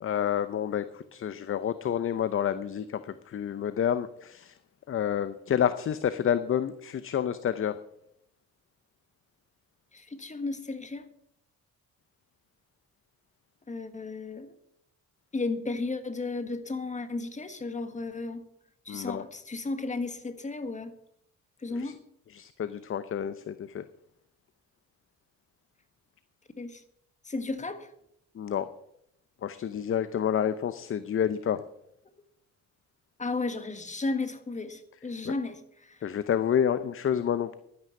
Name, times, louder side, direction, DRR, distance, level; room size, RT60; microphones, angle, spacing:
voice 1, 0.0-4.6 4.9-7.8 18.9-19.2 21.7-21.9 22.3-23.9 28.3-28.7 29.4-31.6 35.3-35.4 36.0-37.5, left 9 dB, 45° left, 13 dB, 0.7 m, -29 dB
voice 2, 9.9-11.1 13.7-14.5 15.3-18.4 18.9-20.9 21.6-22.0 26.6-26.8 27.3-27.9 33.2-36.0, left 3 dB, 25° left, 9 dB, 1.6 m, -34 dB
12.0 x 9.5 x 7.0 m, 0.75 s
cardioid pair, 90°, 30 cm